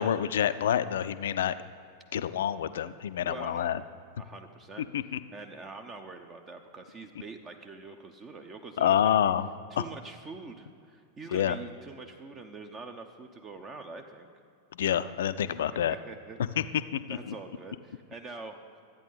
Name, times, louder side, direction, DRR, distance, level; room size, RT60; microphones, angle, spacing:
voice 1, 0.0-1.5 2.1-3.8 4.8-5.2 8.8-9.5 9.8-9.9 11.3-11.6 14.7-16.0 16.6-16.7 16.9-17.3, left 10 dB, 60° left, 14 dB, 0.4 m, -27 dB
voice 2, 3.2-3.8 4.2-4.9 5.3-9.3 9.7-14.3 15.4-16.4 17.1-18.6, right 3 dB, 25° right, 5 dB, 0.7 m, -45 dB
13.0 x 8.9 x 5.5 m, 2.5 s
figure-of-eight pair, 90°, 0 cm